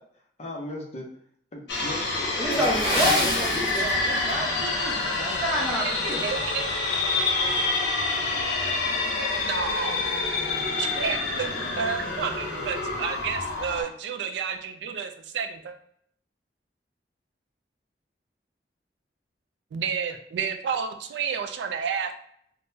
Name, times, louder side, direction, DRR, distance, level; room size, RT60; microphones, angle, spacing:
voice 1, 0.4-1.1 1.5-4.0, left 1 dB, 40° left, 1 dB, 0.5 m, -36 dB
sound 1, 1.7-13.8, left 3 dB, 90° left, 0.7 m, -27 dB
voice 2, 2.4-6.3, equal, 5° right, -6 dB, 0.8 m, -29 dB
Water / Splash splatter, 2.5-4.4 4.7-4.9 5.5-5.7 6.1-6.2, equal, 20° left, 1.1 m, -28 dB
voice 3, 6.0-6.7 9.2-10.1 10.8-11.5 11.8-15.7 19.7-22.1, right 6 dB, 80° right, 7 dB, 0.3 m, -30 dB
3.6 x 2.0 x 2.6 m, 0.68 s
head